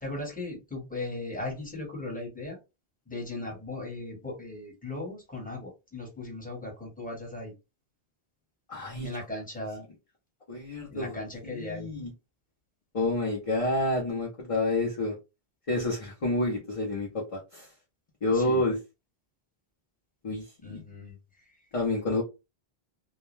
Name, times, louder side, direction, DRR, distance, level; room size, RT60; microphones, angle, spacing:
voice 1, 0.0-2.6 3.1-7.5 9.0-9.8 10.9-11.9 18.3-18.6 20.6-21.4, left 2 dB, 10° left, 1.1 m, -37 dB
voice 2, 8.7-9.1 10.5-11.2 11.4-12.1 12.9-15.1 15.7-17.7 18.2-18.8 20.2-20.8 21.7-22.2, left 2 dB, 40° left, 0.7 m, -29 dB
2.2 x 2.2 x 3.0 m
omnidirectional pair, 1.0 m